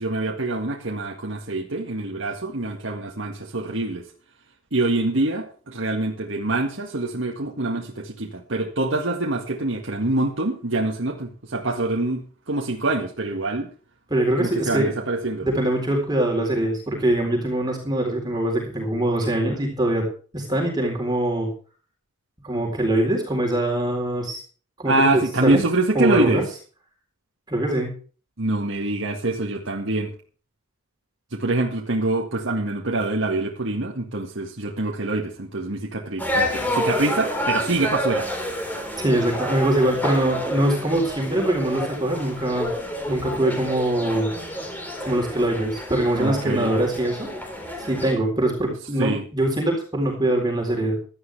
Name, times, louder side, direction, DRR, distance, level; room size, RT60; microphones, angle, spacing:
voice 1, 0.0-4.1 4.7-13.7 14.4-15.5 24.8-26.4 28.4-30.1 31.3-38.3 46.2-46.7 49.0-49.2, right 2 dB, 65° right, 0 dB, 1.9 m, -25 dB
voice 2, 14.1-14.9 15.4-20.1 20.3-21.5 22.4-24.4 24.8-25.6 25.9-26.4 27.5-27.9 39.0-42.7 43.0-44.3 45.0-47.3 47.8-51.0, right 1 dB, 20° right, 0 dB, 4.0 m, -23 dB
sound 1, 36.2-48.1, equal, 10° left, 3.8 m, -29 dB
16.5 x 12.5 x 3.4 m, 0.39 s
head